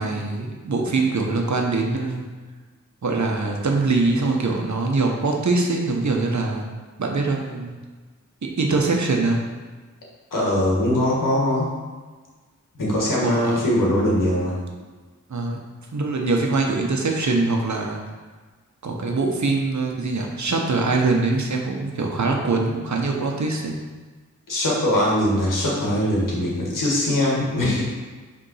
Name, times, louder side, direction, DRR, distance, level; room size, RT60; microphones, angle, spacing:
voice 1, 0.0-2.2 3.0-6.7 7.0-7.8 8.6-9.5 13.2-13.6 15.3-15.6 15.9-18.0 18.8-23.8, right 3 dB, 65° right, 1 dB, 1.1 m, -23 dB
voice 2, 10.3-11.7 12.7-14.5 24.5-27.8, left 1 dB, 90° left, -4 dB, 1.7 m, -21 dB
5.5 x 3.7 x 5.7 m, 1.4 s
cardioid pair, 40°, 31 cm